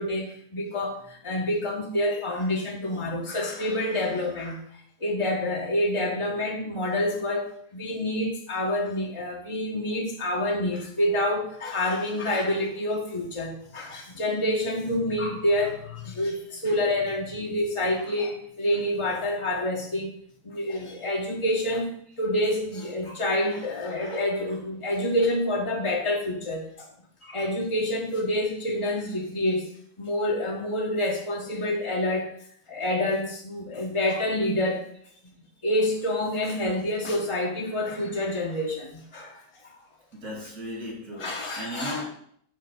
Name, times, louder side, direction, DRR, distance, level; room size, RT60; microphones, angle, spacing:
voice 1, 0.0-4.6 5.0-7.4 7.7-20.1 20.4-26.9 27.2-29.7 30.0-32.3 32.7-34.8 35.6-39.4 41.2-42.0, left 1 dB, 35° left, -1 dB, 0.5 m, -27 dB
voice 2, 40.1-42.0, equal, 80° right, -3 dB, 2.5 m, -36 dB
7.1 x 2.5 x 5.5 m, 0.65 s
omnidirectional pair, 1.6 m